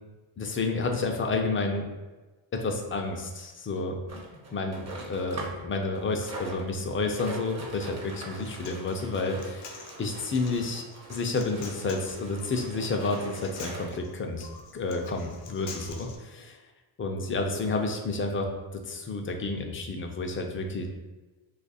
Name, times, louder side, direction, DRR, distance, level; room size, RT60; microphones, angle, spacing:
voice 1, 0.4-1.8 2.5-4.2 4.5-10.8 11.1-14.5 14.7-16.6 17.0-20.9, left 3 dB, 30° left, 3 dB, 0.4 m, -30 dB
sound 1, 4.1-5.7 5.9-14.1 14.8-14.9 15.1-15.2 15.7-15.8, right 2 dB, 35° right, 0.7 m, -43 dB
Human voice, 8.2-16.2, left 5 dB, 65° left, 0.6 m, -46 dB
2.8 x 2.4 x 4.0 m, 1.2 s
cardioid pair, 115°, 47 cm